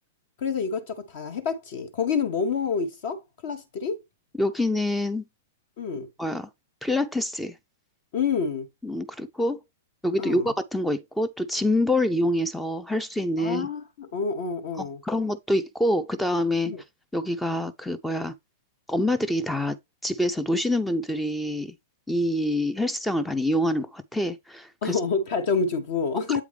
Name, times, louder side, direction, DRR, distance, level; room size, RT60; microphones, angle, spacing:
voice 1, 0.4-4.0 5.8-6.1 8.1-8.7 10.2-10.5 13.4-15.0 16.7-16.8 24.8-26.4, left 5 dB, 45° left, 1.0 m, -28 dB
voice 2, 4.4-5.2 6.2-6.5 6.8-7.5 8.8-9.6 10.0-13.7 14.8-16.7 17.1-18.3 18.9-19.8 20.0-21.7 22.1-25.0, left 1 dB, 5° left, 0.5 m, -26 dB
7.9 x 4.6 x 3.3 m
figure-of-eight pair, 105°, 0 cm